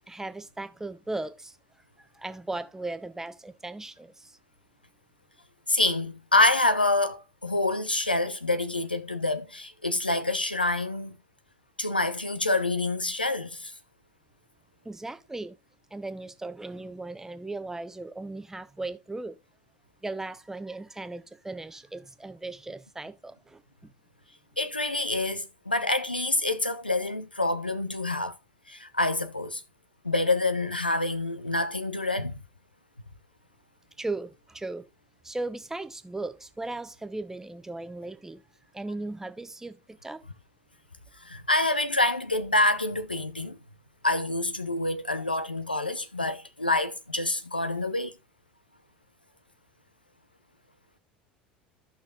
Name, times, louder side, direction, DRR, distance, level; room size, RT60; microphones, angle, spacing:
voice 1, 0.1-1.6 2.0-4.4 14.8-15.6 15.9-19.4 20.0-23.9 34.0-34.9 35.2-38.4 38.7-40.2, right 2 dB, 10° right, 0.8 m, -37 dB
voice 2, 5.7-11.2 11.8-13.7 24.6-28.4 28.7-29.6 30.0-32.4 41.2-43.6 44.0-48.1, left 2 dB, 90° left, 0.7 m, -27 dB
14.5 x 5.9 x 2.5 m
figure-of-eight pair, 70°, 5 cm